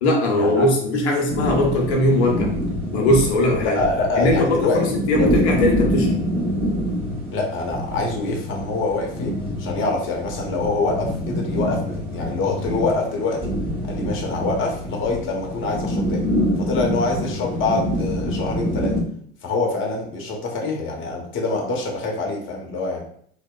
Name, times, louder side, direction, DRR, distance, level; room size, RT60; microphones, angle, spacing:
voice 1, 0.0-2.5 2.9-3.8 4.2-6.1, left 1 dB, 80° left, 0 dB, 0.7 m, -20 dB
sound 1, 1.3-19.0, equal, 5° right, 1.2 m, -26 dB
voice 2, 3.6-5.3 7.3-13.5 13.8-16.2 16.6-18.9 19.4-23.0, left 3 dB, 40° left, 0 dB, 0.8 m, -25 dB
2.6 x 2.0 x 2.3 m, 0.62 s
hypercardioid pair, 80°, 32 cm